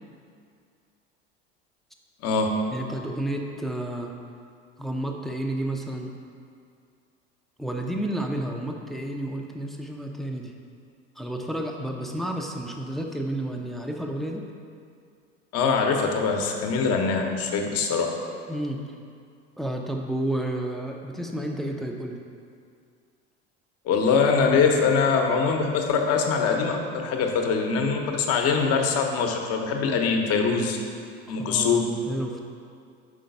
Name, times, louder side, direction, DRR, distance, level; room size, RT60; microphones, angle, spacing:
voice 1, 2.7-4.1 4.8-6.1 7.6-10.5 11.2-14.5 18.5-18.8 19.6-22.2 31.3-32.4, right 1 dB, ahead, 1 dB, 0.5 m, -31 dB
voice 2, 15.5-18.1 23.8-30.8 31.3-31.8, left 5 dB, 50° left, 3 dB, 0.9 m, -23 dB
5.3 x 3.8 x 5.3 m, 2.3 s
hypercardioid pair, 90°, 32 cm